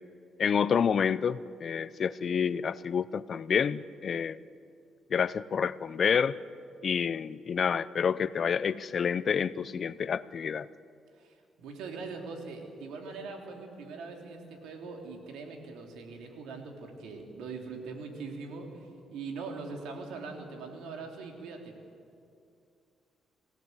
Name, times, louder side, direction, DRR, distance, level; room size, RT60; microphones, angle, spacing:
voice 1, 0.4-4.4 5.1-6.4 6.8-10.7, left 7 dB, 50° left, 17 dB, 0.6 m, -28 dB
voice 2, 11.1-21.7, right 4 dB, 85° right, 3 dB, 3.4 m, -42 dB
26.5 x 17.0 x 8.1 m, 2.5 s
cardioid pair, 90°, 0 cm